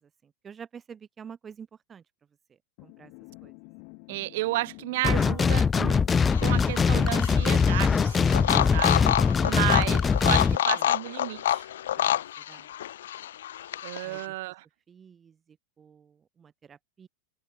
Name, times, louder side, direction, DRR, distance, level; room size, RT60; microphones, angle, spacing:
voice 1, 0.2-2.0 2.8-3.1 3.4-3.5 8.9-9.9 10.1-10.4 10.7-10.9 12.0-12.7 14.0-14.3 14.9-17.1, right 7 dB, 20° right, 3.0 m, -47 dB
sound 1, 2.8-8.1, left 40 dB or more, 45° left, 2.6 m, -49 dB
voice 2, 4.1-11.7 13.8-14.6, right 19 dB, 50° right, 4.3 m, -33 dB
sound 2, 5.0-10.6, left 5 dB, 15° left, 0.9 m, -22 dB
sound 3, 6.1-14.2, left 12 dB, 60° left, 1.3 m, -29 dB
figure-of-eight pair, 90°, 0 cm